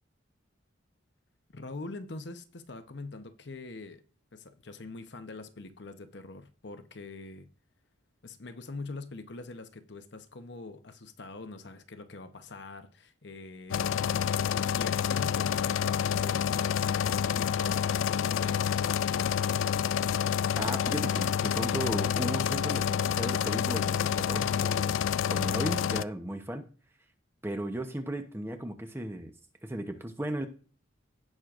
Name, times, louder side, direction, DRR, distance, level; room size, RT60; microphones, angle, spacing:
voice 1, 1.5-4.0 4.3-7.5 8.2-14.0 14.7-18.9, left 3 dB, 60° left, 0.8 m, -44 dB
sound 1, 13.7-26.0, left 8 dB, 80° left, 0.3 m, -28 dB
voice 2, 20.6-25.0 25.3-26.7 27.4-29.3 29.6-30.5, right 1 dB, 10° right, 0.8 m, -35 dB
17.0 x 6.3 x 2.5 m
head